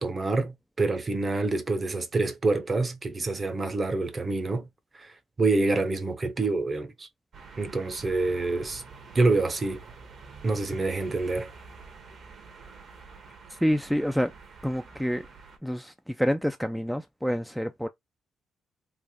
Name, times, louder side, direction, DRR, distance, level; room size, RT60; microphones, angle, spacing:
voice 1, 0.0-4.7 4.9-7.1 7.6-8.8 9.1-9.8 10.4-11.5, right 3 dB, 30° right, 0.7 m, -27 dB
sound 1, 7.3-15.6, right 4 dB, 60° right, 1.1 m, -47 dB
voice 2, 13.5-14.3 14.6-15.3 15.6-17.9, equal, ahead, 0.4 m, -27 dB
3.4 x 2.4 x 3.6 m
cardioid pair, 90°, 0 cm